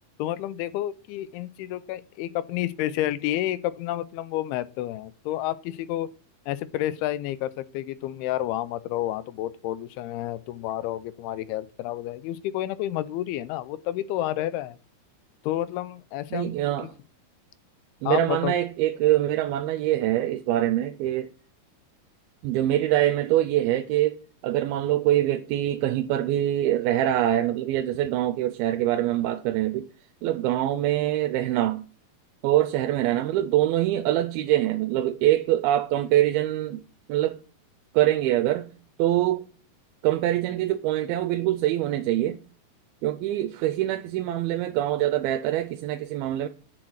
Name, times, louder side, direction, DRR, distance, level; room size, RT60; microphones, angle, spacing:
voice 1, 0.2-6.1 6.5-14.8 15.4-16.5 16.8-16.9 18.1-18.5, left 14 dB, 90° left, 2.6 m, -30 dB
voice 2, 16.3-16.9 18.0-21.3 22.4-24.2 24.4-29.9 30.2-31.8 32.4-36.8 37.1-37.4 37.9-38.7 39.0-39.4 40.0-42.4 43.0-46.5, right 13 dB, 85° right, 2.4 m, -24 dB
8.6 x 5.9 x 6.4 m
omnidirectional pair, 4.4 m